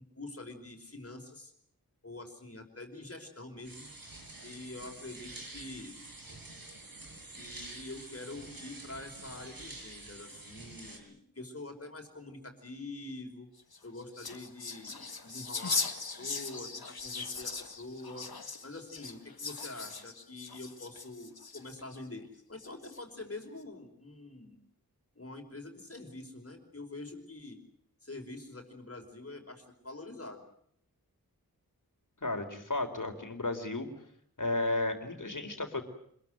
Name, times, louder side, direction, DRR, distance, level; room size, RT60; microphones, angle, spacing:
voice 1, 0.1-1.5 2.0-3.9 4.4-6.0 7.3-13.5 13.8-18.3 18.6-24.6 25.1-27.6 28.0-30.4, left 2 dB, 40° left, 5 dB, 5.2 m, -45 dB
sound 1, 3.6-11.0, right 2 dB, 70° right, 7.1 m, -48 dB
sound 2, 13.6-22.0 22.6-23.2, left 4 dB, 80° left, 2.2 m, -39 dB
voice 2, 32.2-33.9 34.4-35.8, left 2 dB, 55° left, 6 dB, 4.5 m, -33 dB
26.5 x 22.0 x 8.0 m, 0.67 s
wide cardioid pair, 65°, 37 cm